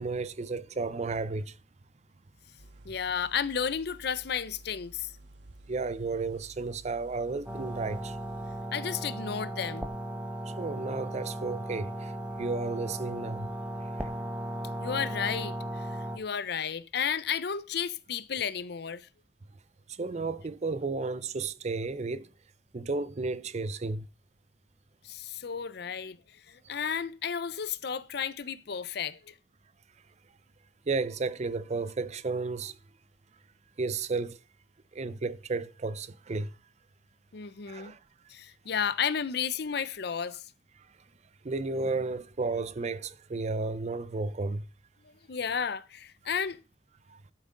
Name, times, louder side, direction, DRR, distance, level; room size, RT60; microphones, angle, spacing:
voice 1, 0.0-1.6 5.7-8.2 10.5-12.1 12.4-13.5 13.8-14.2 19.9-22.3 22.7-24.1 30.9-32.8 33.8-34.4 34.9-36.5 37.7-38.0 41.4-44.7 47.1-47.2, right 3 dB, 40° right, 0.5 m, -33 dB
sound 1, 2.6-8.6, right 1 dB, 75° right, 0.9 m, -53 dB
voice 2, 2.8-5.1 8.7-9.9 14.8-15.9 16.1-19.1 25.0-26.2 26.5-29.3 37.3-37.9 38.3-40.4 45.0-46.6, left 7 dB, 65° left, 0.6 m, -33 dB
sound 2, 7.5-16.2, right 1 dB, 10° right, 1.1 m, -36 dB
12.5 x 7.3 x 3.8 m
head